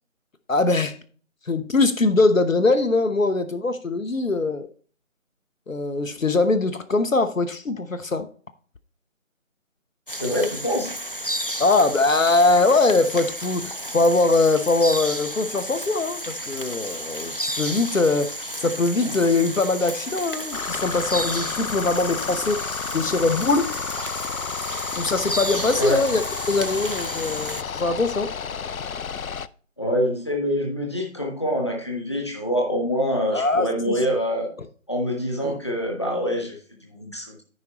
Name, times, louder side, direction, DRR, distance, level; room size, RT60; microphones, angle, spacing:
voice 1, 0.5-1.0 1.5-4.7 5.7-8.3 11.6-23.7 25.0-26.2 26.5-28.3 33.3-34.0 35.4-35.6, left 3 dB, 70° left, 10 dB, 1.0 m, -22 dB
sound 1, 10.1-27.6, equal, 45° left, 0.4 m, -32 dB
voice 2, 10.1-10.9 25.7-26.0 29.8-34.5 34.9-36.6 36.9-37.3, equal, 20° left, 1 dB, 1.3 m, -25 dB
sound 2, 20.5-29.5, left 6 dB, 90° left, 0.6 m, -31 dB
14.0 x 5.1 x 3.0 m, 0.43 s
figure-of-eight pair, 175°, 40 cm